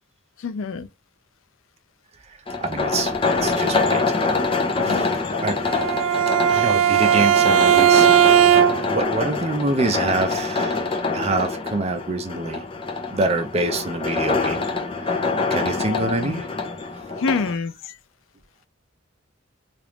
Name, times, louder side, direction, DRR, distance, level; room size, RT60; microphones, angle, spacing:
voice 1, 0.4-0.9 4.9-5.1 15.8-16.4 17.2-17.7, left 4 dB, 85° left, 0.4 m, -26 dB
sound 1, 2.5-17.5, left 3 dB, 25° left, 0.6 m, -25 dB
voice 2, 2.6-3.1 3.4-4.0 4.8-5.1 5.4-5.6 6.5-8.1 8.9-10.9 11.1-12.6 13.1-14.6 15.1-15.2 15.5-16.4, right 2 dB, 30° right, 0.5 m, -25 dB
Bowed string instrument, 5.6-9.0, right 10 dB, 90° right, 0.3 m, -17 dB
3.0 x 2.5 x 3.3 m
head